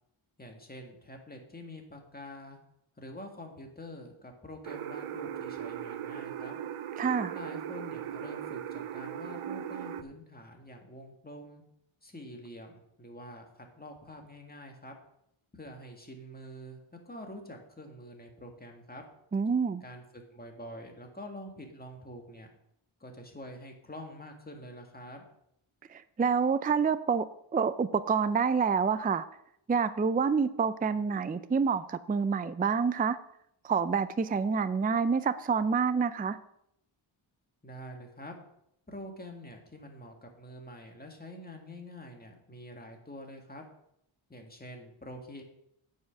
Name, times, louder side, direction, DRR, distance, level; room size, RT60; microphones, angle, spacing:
voice 1, 0.4-2.6 3.0-6.6 7.3-11.6 12.0-14.9 15.5-16.8 17.1-19.0 19.8-22.5 23.0-25.2 37.6-38.3 38.9-43.6 44.3-45.4, left 1 dB, 20° left, 2 dB, 2.0 m, -46 dB
sound 1, 4.6-10.0, right 9 dB, 90° right, 0.7 m, -38 dB
voice 2, 7.0-7.3 19.3-19.8 25.9-27.3 27.5-29.3 29.7-33.2 33.6-36.4, right 5 dB, 20° right, 13 dB, 0.4 m, -27 dB
9.4 x 5.7 x 7.6 m, 0.75 s
wide cardioid pair, 115°, 49 cm